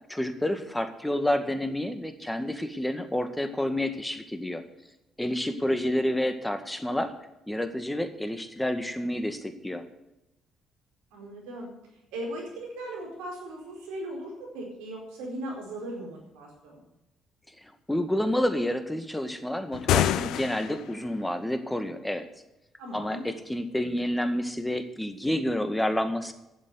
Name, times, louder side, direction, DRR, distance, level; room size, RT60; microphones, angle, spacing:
voice 1, 0.1-4.6 5.2-7.1 7.5-9.8 17.6-22.2 22.9-26.3, left 1 dB, 10° left, 8 dB, 1.9 m, -29 dB
voice 2, 11.1-11.7 12.1-16.8 22.8-23.2, right 1 dB, 80° right, 0 dB, 4.6 m, -38 dB
sound 1, 19.7-21.0, left 11 dB, 75° left, 0.6 m, -26 dB
11.5 x 7.6 x 9.7 m, 0.90 s
hypercardioid pair, 55°, 0 cm